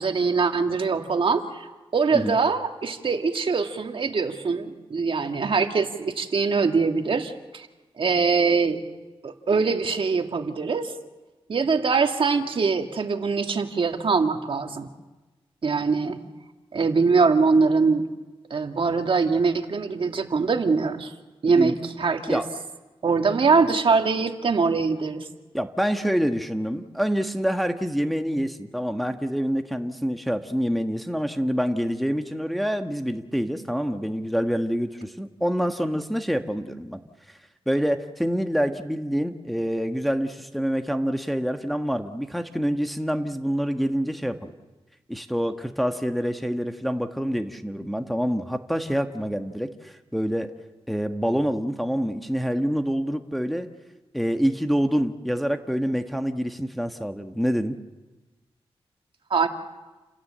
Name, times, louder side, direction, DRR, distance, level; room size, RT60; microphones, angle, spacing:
voice 1, 0.0-1.7 1.9-7.7 8.0-8.8 9.2-10.9 11.5-14.9 15.6-16.2 16.7-18.1 18.5-21.1 21.4-22.4 23.0-25.3 59.3-59.5, right 4 dB, 60° right, 5 dB, 1.8 m, -23 dB
voice 2, 25.5-37.0 37.7-44.5 45.1-50.5 50.9-53.7 54.1-57.8, equal, ahead, 5 dB, 1.4 m, -26 dB
29.5 x 17.0 x 7.6 m, 1.2 s
cardioid pair, 65°, 10 cm